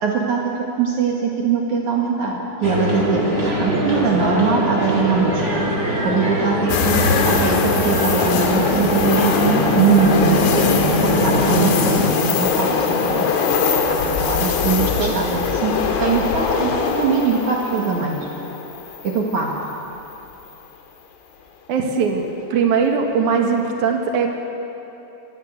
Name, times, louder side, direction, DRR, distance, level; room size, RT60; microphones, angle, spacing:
voice 1, 0.0-5.6 6.0-10.7 11.0-11.9 12.2-13.2 13.7-18.3 19.0-19.5, right 5 dB, 60° right, -1 dB, 2.1 m, -22 dB
sound 1, 2.6-12.1, equal, 20° right, 2.5 m, -21 dB
sound 2, 6.7-19.7 20.1-20.2 22.7-23.1, left 6 dB, 80° left, 4.1 m, -22 dB
voice 2, 21.7-22.2 22.5-24.3, right 6 dB, 75° right, 2 dB, 1.8 m, -20 dB
24.0 x 14.5 x 8.0 m, 3.0 s
omnidirectional pair, 5.8 m